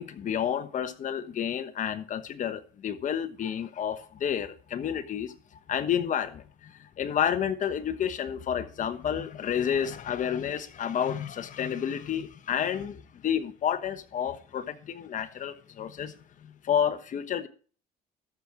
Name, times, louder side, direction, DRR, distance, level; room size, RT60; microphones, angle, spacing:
voice 1, 0.0-17.5, left 9 dB, 50° left, 1.2 m, -30 dB
13.0 x 6.1 x 5.0 m
cardioid pair, 110°, 17 cm